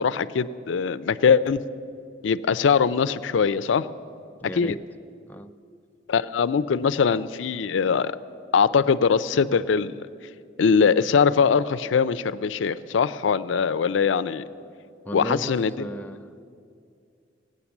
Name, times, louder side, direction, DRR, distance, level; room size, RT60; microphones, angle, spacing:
voice 1, 0.0-1.6 2.2-3.9 4.6-4.7 6.1-8.2 8.5-10.0 10.6-14.4 15.1-15.9, left 6 dB, 85° left, 14 dB, 0.4 m, -22 dB
voice 2, 4.4-4.8 5.3-5.5 15.0-16.4, equal, 10° left, 6 dB, 0.4 m, -35 dB
16.5 x 9.4 x 7.1 m, 2.4 s
head